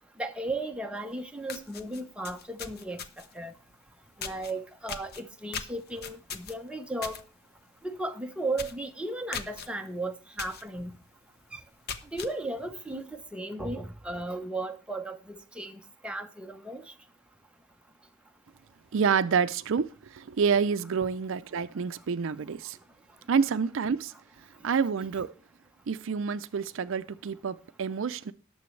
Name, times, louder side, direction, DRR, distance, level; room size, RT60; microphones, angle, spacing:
voice 1, 0.2-3.0 3.4-3.5 4.2-7.2 7.8-10.9 12.1-13.0 13.3-15.2 15.6-15.7 16.0-16.8, right 2 dB, 5° right, 0.7 m, -35 dB
sound 1, 1.0-1.1 1.4-3.4 4.2-4.5 4.9-7.2 7.6-7.8 8.1-8.2 8.5-8.8 9.3-9.7 10.4-10.6 11.1-11.2 11.7-12.3, left 6 dB, 50° left, 0.9 m, -39 dB
voice 2, 18.9-22.8 23.3-24.1 24.6-25.3 25.9-28.3, right 6 dB, 60° right, 0.4 m, -28 dB
18.5 x 6.8 x 3.2 m
head